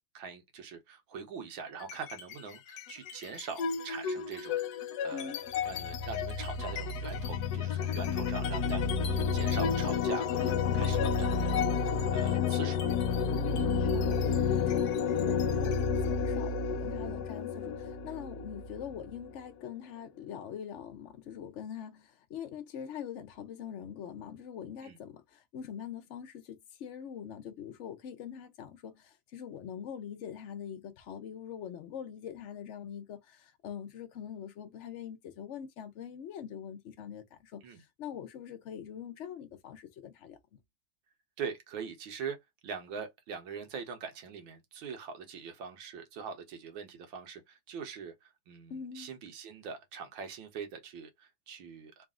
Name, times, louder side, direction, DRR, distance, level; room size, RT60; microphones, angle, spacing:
voice 1, 0.1-4.6 5.0-5.4 5.6-12.8 13.4-13.6 24.8-25.0 37.6-37.8 41.4-52.1, right 5 dB, 90° right, 1.8 m, -43 dB
sound 1, 1.8-2.3 2.7-19.3, left 6 dB, 65° left, 1.0 m, -31 dB
voice 2, 10.4-10.9 13.3-40.4 48.7-49.1, left 8 dB, 85° left, 0.6 m, -43 dB
3.9 x 2.4 x 3.6 m
omnidirectional pair, 2.1 m